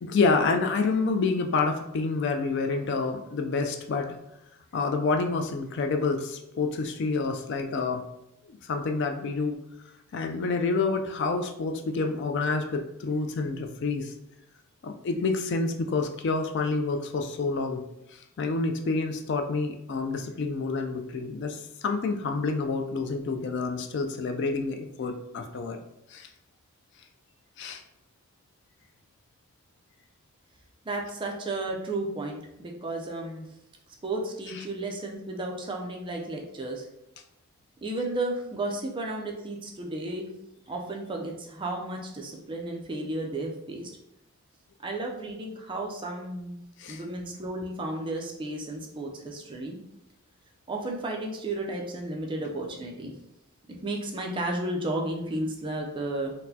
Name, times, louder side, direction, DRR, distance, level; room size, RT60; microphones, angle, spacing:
voice 1, 0.0-4.2 4.7-8.0 8.5-9.6 10.1-14.1 14.8-17.8 18.4-25.8 26.1-26.3 27.6-27.8 46.8-47.0, left 4 dB, 55° left, 5 dB, 0.3 m, -28 dB
voice 2, 30.9-33.5 34.0-36.9 37.8-40.3 40.7-43.9 44.8-46.6 46.9-49.8 50.7-53.1 53.8-56.3, right 2 dB, 20° right, 0 dB, 0.4 m, -33 dB
4.2 x 2.1 x 2.7 m, 0.86 s
head